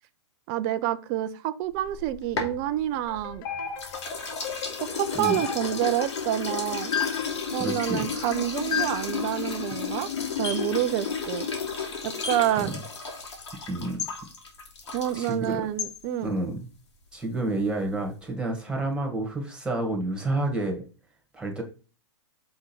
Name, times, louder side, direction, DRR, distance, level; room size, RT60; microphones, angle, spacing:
voice 1, 0.5-3.4 4.8-6.9 7.5-10.1 10.4-11.5 12.0-12.7 14.9-16.3, right 12 dB, 40° right, 0.6 m, -28 dB
sound 1, 1.8-3.4 3.8-15.5, left 5 dB, 75° left, 2.6 m, -33 dB
sound 2, 3.1-8.6, left 9 dB, 50° left, 0.8 m, -43 dB
sound 3, 3.5-4.1 5.2-5.9 6.9-7.3 8.7-9.1 10.4-10.7 12.2-12.5 14.0-14.2 15.8-16.0, left 7 dB, 30° left, 1.2 m, -31 dB
voice 2, 7.6-8.0 12.5-12.8 13.7-14.0 15.1-15.6 16.2-16.6 17.1-20.8 21.3-21.6, right 2 dB, 5° right, 1.9 m, -29 dB
6.3 x 3.7 x 4.5 m
hypercardioid pair, 125°, 15 cm